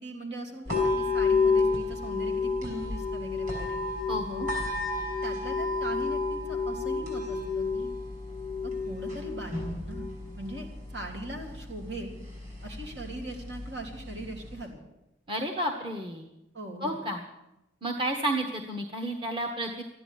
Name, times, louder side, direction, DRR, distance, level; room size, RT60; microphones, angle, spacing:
voice 1, 0.0-3.8 5.0-7.9 8.6-12.1 12.6-14.8 16.5-16.9, right 1 dB, 75° right, 1 dB, 3.2 m, -40 dB
sound 1, 0.6-14.6, left 4 dB, 45° right, 5.9 m, -31 dB
voice 2, 4.1-4.5 15.3-16.3 16.8-17.2 17.8-19.8, right 1 dB, 25° right, 3 dB, 1.1 m, -31 dB
13.5 x 10.0 x 10.0 m, 0.92 s
head